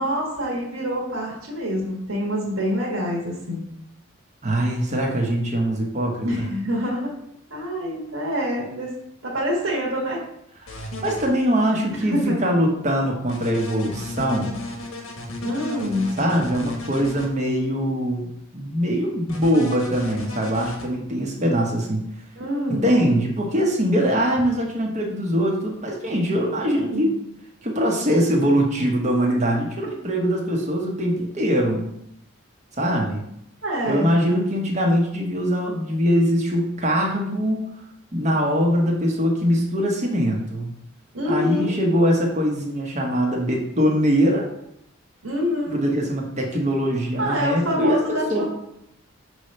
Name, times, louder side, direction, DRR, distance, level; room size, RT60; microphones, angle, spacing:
voice 1, 0.0-3.6 6.2-7.1 7.5-8.9 9.2-10.2 12.1-12.4 15.4-16.2 22.4-22.9 26.9-27.2 33.6-34.1 41.1-41.7 45.2-45.8 47.2-48.4, equal, 70° right, -3 dB, 1.6 m, -26 dB
voice 2, 4.4-6.3 11.0-14.6 16.2-22.0 22.7-27.1 27.6-31.9 32.8-33.2 33.9-37.6 38.1-40.7 41.3-44.5 45.7-48.4, equal, 35° right, 0 dB, 1.1 m, -22 dB
sound 1, 10.7-11.3 13.3-17.3 19.3-20.8, left 1 dB, 85° left, 1.2 m, -33 dB
5.4 x 3.2 x 5.4 m, 0.78 s
head